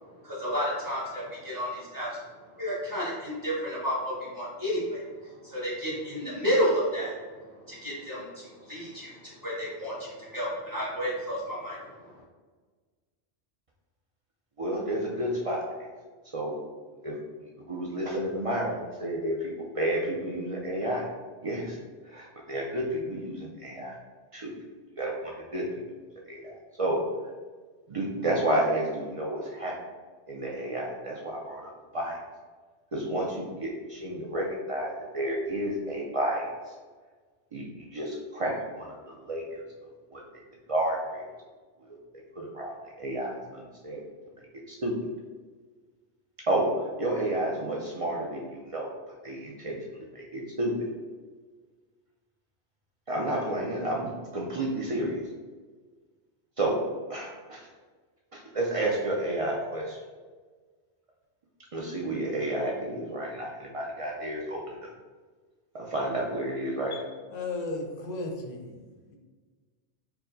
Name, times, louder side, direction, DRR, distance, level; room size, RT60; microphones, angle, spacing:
voice 1, 0.0-2.2 2.5-7.2 7.7-12.2, equal, 20° right, -8 dB, 1.2 m, -31 dB
voice 2, 14.6-15.6 16.3-16.6 17.0-17.2 17.7-21.1 21.4-21.8 22.1-24.0 24.3-24.5 25.0-25.7 26.3-27.0 27.9-29.8 30.3-32.2 32.9-36.7 37.5-39.6 40.1-40.2 40.7-41.2 41.8-42.0 42.4-44.0 44.7-44.9 46.5-50.9 53.1-55.2 56.6-56.8 57.1-57.7 58.3-60.0 61.7-64.9 65.7-66.9, right 1 dB, 55° right, -2 dB, 0.3 m, -31 dB
voice 3, 66.9-68.8 69.0-69.2, left 2 dB, 50° left, 2 dB, 0.6 m, -35 dB
4.5 x 2.1 x 3.8 m, 1.4 s
omnidirectional pair, 1.2 m